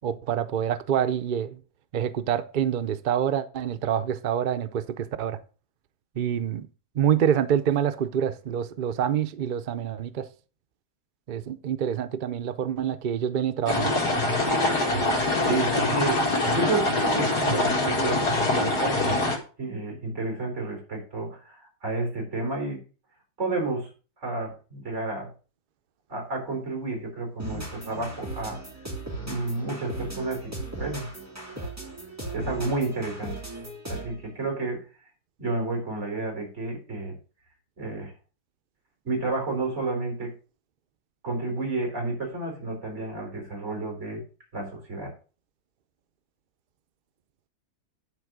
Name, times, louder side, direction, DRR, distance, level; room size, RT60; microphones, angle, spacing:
voice 1, 0.0-1.6 1.9-5.4 6.2-6.7 7.0-10.3 11.3-14.0, right 9 dB, 75° right, 0.4 m, -26 dB
deep a small stream in the woods rear, 13.7-19.4, left 2 dB, 75° left, 2.5 m, -24 dB
voice 2, 15.4-19.3 19.6-22.8 23.4-23.9 24.2-25.3 26.1-28.6 29.2-31.1 31.5-31.7 32.3-33.4 33.9-34.9 35.4-37.1 37.8-38.1 39.0-40.3 41.2-44.2 44.5-45.1, right 3 dB, 45° right, 4.1 m, -31 dB
sound 1, 27.4-34.3, right 2 dB, 10° right, 2.5 m, -37 dB
10.5 x 4.5 x 6.1 m
omnidirectional pair, 1.7 m